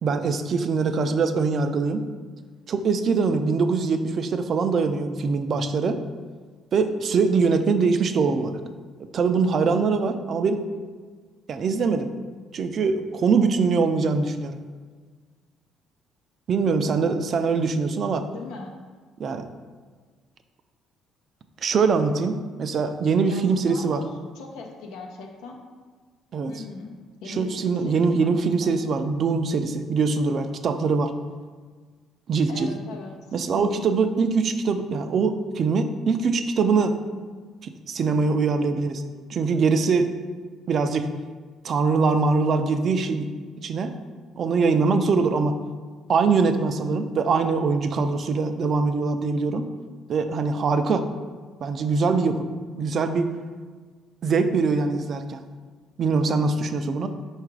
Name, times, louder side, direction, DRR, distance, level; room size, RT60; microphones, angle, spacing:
voice 1, 0.0-2.1 2.7-6.0 6.7-8.6 9.1-10.7 11.5-12.1 12.5-14.6 16.5-18.3 19.2-19.5 21.6-24.0 26.3-26.5 27.4-31.1 32.3-32.7 33.3-37.0 37.6-39.0 39.3-40.1 40.7-41.1 41.6-43.3 43.6-44.0 44.4-45.6 46.1-49.7 50.1-51.1 51.6-52.5 52.8-53.3 54.2-55.4 56.0-57.1, right 4 dB, 50° right, 8 dB, 0.3 m, -23 dB
voice 2, 18.3-18.7 23.3-24.1 24.3-25.6 26.5-26.9 27.2-28.7 32.5-33.9, left 3 dB, 90° left, 1 dB, 0.6 m, -39 dB
4.7 x 2.4 x 4.6 m, 1.5 s
cardioid pair, 105°, 0 cm